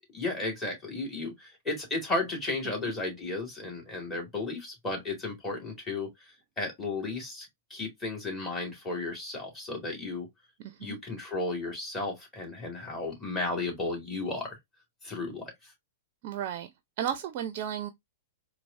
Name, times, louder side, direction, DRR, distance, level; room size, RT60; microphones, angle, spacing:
voice 1, 0.1-6.1 6.6-10.3 10.8-14.6 15.0-15.5, left 2 dB, 15° left, 2.1 m, -34 dB
voice 2, 10.6-11.0 16.2-17.9, right 9 dB, 50° right, 0.4 m, -34 dB
4.5 x 2.0 x 2.5 m
hypercardioid pair, 115°, 0 cm